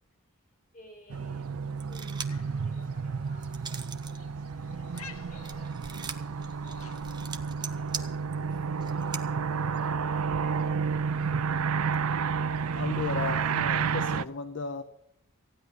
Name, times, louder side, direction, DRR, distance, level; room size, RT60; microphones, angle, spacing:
voice 1, 0.7-10.9, equal, 35° left, -2 dB, 5.1 m, -57 dB
sound 1, 1.1-14.2, right 5 dB, 85° right, 0.5 m, -31 dB
Gun Foley, 1.8-2.5 2.9-4.2 4.5-9.2, right 6 dB, 20° right, 0.7 m, -41 dB
sound 2, 2.2-7.5, left 6 dB, 80° left, 1.1 m, -53 dB
voice 2, 12.7-14.8, left 4 dB, 55° left, 10 dB, 0.7 m, -34 dB
15.5 x 9.6 x 6.4 m, 0.77 s
head